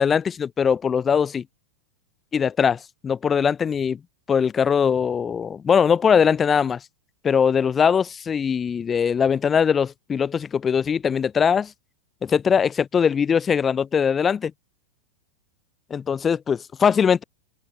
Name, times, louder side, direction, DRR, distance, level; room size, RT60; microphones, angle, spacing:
voice 1, 0.0-1.4 2.3-4.0 4.3-6.8 7.2-11.7 12.2-14.5 15.9-17.2, left 7 dB, 20° left, 0.6 m, -21 dB
open air
figure-of-eight pair, 90°, 0 cm